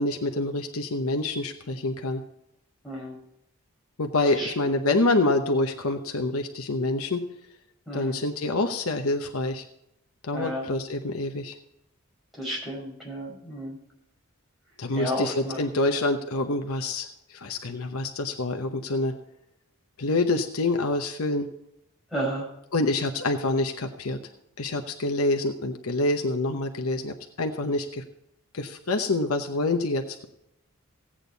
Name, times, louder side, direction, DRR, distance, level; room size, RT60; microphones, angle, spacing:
voice 1, 0.0-2.2 4.0-7.2 7.9-9.6 10.2-11.5 14.8-19.1 20.0-21.5 22.7-24.2 24.6-28.0 28.5-30.3, left 2 dB, 75° left, 5 dB, 0.9 m, -26 dB
voice 2, 2.8-3.2 4.3-4.8 7.9-8.2 10.3-10.7 12.4-13.8 14.9-15.6 22.1-22.5, equal, ahead, -5 dB, 5.3 m, -32 dB
16.5 x 8.8 x 4.1 m, 0.84 s
head